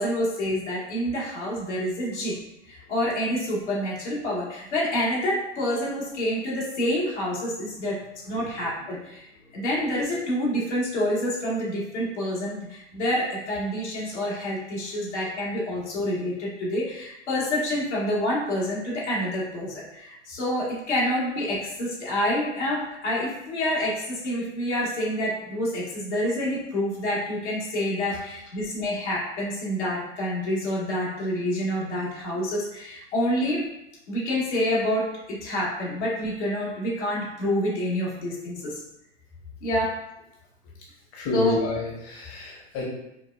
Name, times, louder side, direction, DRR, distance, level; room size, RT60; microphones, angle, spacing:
voice 1, 0.0-2.4 2.6-9.2 9.5-33.6 34.1-38.8 39.6-40.0 41.3-41.6, left 1 dB, 80° left, -5 dB, 1.4 m, -27 dB
voice 2, 41.1-42.9, left 2 dB, 40° left, -3 dB, 0.9 m, -30 dB
4.7 x 2.3 x 2.3 m, 0.85 s
hypercardioid pair, 95°, 34 cm